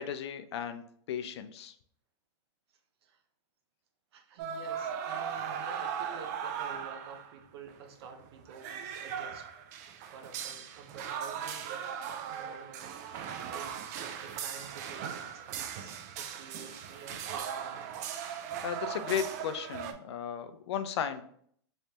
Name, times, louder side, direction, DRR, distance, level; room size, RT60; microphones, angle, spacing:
voice 1, 0.0-1.7 18.6-21.2, left 8 dB, 70° left, 10 dB, 0.4 m, -35 dB
voice 2, 4.1-9.5 10.0-11.8 12.3-17.9, right 5 dB, 65° right, 5 dB, 0.7 m, -50 dB
sound 1, 4.4-7.4 7.7-7.8 8.0-19.9, right 8 dB, 35° right, 0.3 m, -38 dB
Wind instrument woodwind instrument, 13.2-18.3, right 4 dB, ahead, 1.1 m, -59 dB
3.2 x 3.1 x 2.8 m, 0.63 s
supercardioid pair, 160°, 15 cm